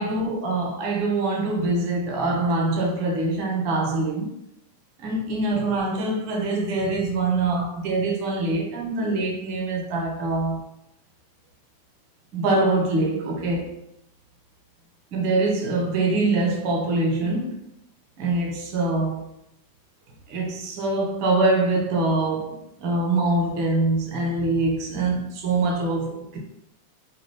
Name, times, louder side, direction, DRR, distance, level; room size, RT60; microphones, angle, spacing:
voice 1, 0.0-4.3 5.0-10.6 12.3-13.8 15.1-17.6 18.2-19.2 20.3-26.4, right 2 dB, 40° right, 0.9 m, -24 dB
3.8 x 2.3 x 3.3 m
figure-of-eight pair, 90°, 0 cm